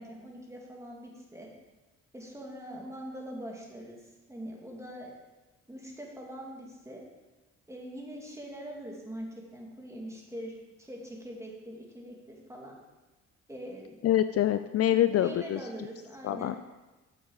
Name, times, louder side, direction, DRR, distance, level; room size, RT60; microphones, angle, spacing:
voice 1, 0.0-1.5 2.1-5.2 5.7-7.0 7.7-12.7 13.5-14.0 14.9-16.6, equal, 10° right, -1 dB, 2.4 m, -43 dB
voice 2, 14.0-15.6 16.2-16.7, left 12 dB, 55° left, 11 dB, 0.4 m, -25 dB
9.5 x 7.1 x 4.8 m, 1.2 s
cardioid pair, 90°, 30 cm